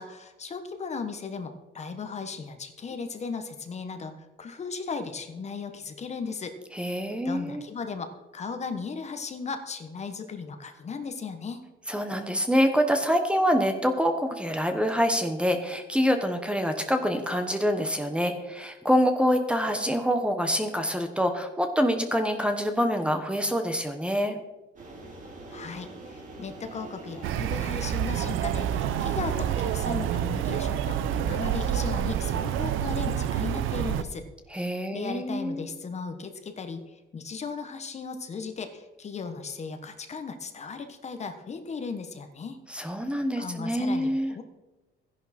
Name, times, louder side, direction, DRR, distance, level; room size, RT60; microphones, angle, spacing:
voice 1, 0.0-6.5 7.2-11.6 25.5-42.6 43.0-43.1 43.4-44.4, left 5 dB, 35° left, 7 dB, 1.2 m, -36 dB
voice 2, 6.7-7.6 11.9-24.4 34.5-35.7 42.7-44.3, equal, 5° right, 6 dB, 1.1 m, -26 dB
sound 1, 24.8-32.7, right 2 dB, 40° right, 3.5 m, -44 dB
sound 2, 27.2-34.0, right 10 dB, 90° right, 0.7 m, -28 dB
14.0 x 11.0 x 4.3 m, 1.0 s
cardioid pair, 135°, 20 cm